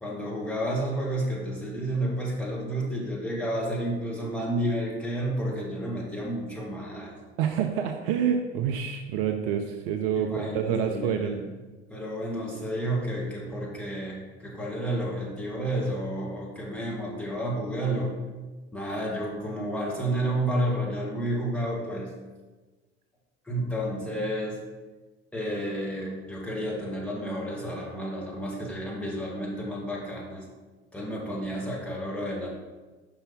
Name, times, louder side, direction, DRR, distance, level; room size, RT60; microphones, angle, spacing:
voice 1, 0.0-7.1 10.1-11.5 11.9-18.1 18.7-22.1 23.4-24.6 25.3-30.4 30.9-32.5, right 1 dB, 5° left, -4 dB, 1.8 m, -31 dB
voice 2, 7.4-11.4, right 8 dB, 55° right, 5 dB, 0.6 m, -27 dB
5.6 x 4.5 x 5.4 m, 1.2 s
figure-of-eight pair, 75°, 35 cm